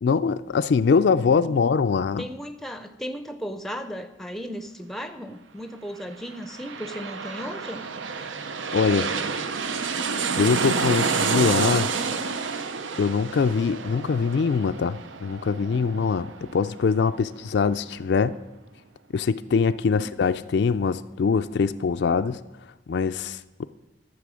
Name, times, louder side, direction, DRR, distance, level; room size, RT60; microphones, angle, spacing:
voice 1, 0.0-2.3 8.7-9.1 10.4-11.9 13.0-18.4 19.1-22.4 22.9-23.6, left 5 dB, 65° left, 11 dB, 0.3 m, -23 dB
voice 2, 2.2-7.9 19.9-20.1, equal, ahead, 9 dB, 0.5 m, -36 dB
sound 1, 6.2-17.5 17.9-18.0, right 5 dB, 85° right, 0.7 m, -29 dB
12.0 x 7.5 x 6.2 m, 1.1 s
head